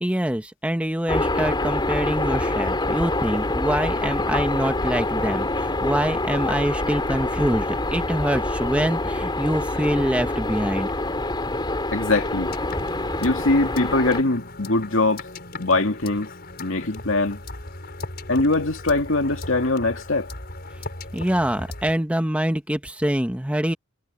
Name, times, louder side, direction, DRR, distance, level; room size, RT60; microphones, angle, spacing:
voice 1, 0.0-11.0 21.1-23.7, equal, 5° right, 1.1 m, -25 dB
sound 1, 1.1-14.2, left 2 dB, 20° left, 3.3 m, -26 dB
voice 2, 11.9-12.5 13.2-15.3 15.6-16.3 16.6-17.4 18.3-20.3, left 2 dB, 65° left, 2.8 m, -22 dB
sound 2, 12.5-22.0, left 2 dB, 50° left, 5.4 m, -38 dB
head